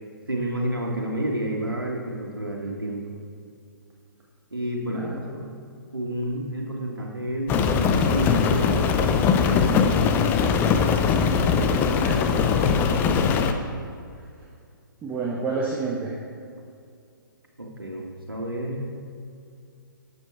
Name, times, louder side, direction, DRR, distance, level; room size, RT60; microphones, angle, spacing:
voice 1, 0.3-3.1 4.5-5.4 5.9-10.1 17.6-18.9, right 1 dB, 85° right, -1 dB, 1.8 m, -30 dB
Rain, 7.5-13.5, left 6 dB, 15° left, 0.6 m, -21 dB
voice 2, 11.9-12.3 15.0-16.2, right 4 dB, 15° right, -3 dB, 1.3 m, -29 dB
12.0 x 8.0 x 4.6 m, 2.4 s
figure-of-eight pair, 130°, 12 cm